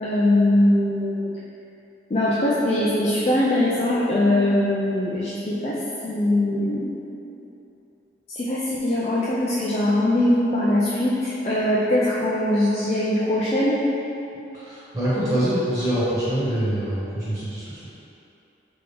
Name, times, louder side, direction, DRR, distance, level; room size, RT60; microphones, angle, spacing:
voice 1, 0.0-1.4 2.1-6.9 8.4-13.8, left 1 dB, 35° left, -7 dB, 0.4 m, -21 dB
voice 2, 14.5-17.8, right 1 dB, 20° right, -13 dB, 1.4 m, -25 dB
3.8 x 3.5 x 3.3 m, 2.9 s
head